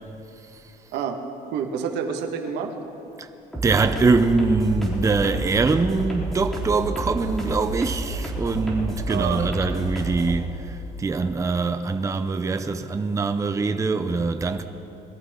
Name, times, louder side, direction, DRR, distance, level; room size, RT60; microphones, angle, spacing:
voice 1, 1.4-2.7 9.1-9.5, right 7 dB, 85° right, 1.5 m, -28 dB
sound 1, 3.5-10.3, right 1 dB, ahead, 3.7 m, -30 dB
voice 2, 3.6-14.6, right 4 dB, 20° right, 0.6 m, -23 dB
22.0 x 13.5 x 3.7 m
cardioid pair, 110°, 17 cm